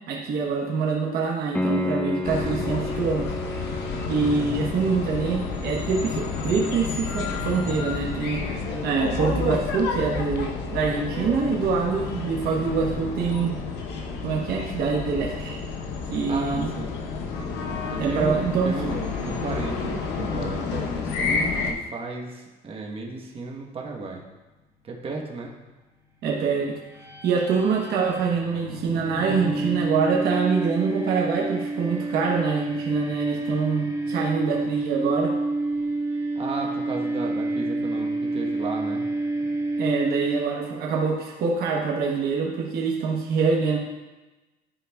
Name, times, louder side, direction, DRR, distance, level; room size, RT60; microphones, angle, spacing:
voice 1, 0.1-3.3 4.1-8.4 8.8-13.6 14.2-15.6 16.1-16.7 18.0-18.7 26.2-26.8 27.2-35.3 39.8-43.8, right 5 dB, 70° right, -2 dB, 1.1 m, -25 dB
Piano, 1.5-12.2 15.5-15.6, left 2 dB, 5° left, 0.5 m, -35 dB
sound 1, 2.2-21.7, left 4 dB, 85° left, 0.8 m, -30 dB
voice 2, 16.3-17.0 17.9-24.2 24.8-25.5 36.3-39.1, right 3 dB, 35° right, 0 dB, 1.1 m, -34 dB
sound 2, 26.8-40.8, right 2 dB, 20° right, 1.5 m, -29 dB
11.0 x 4.9 x 2.3 m, 1.1 s
cardioid pair, 110°, 17 cm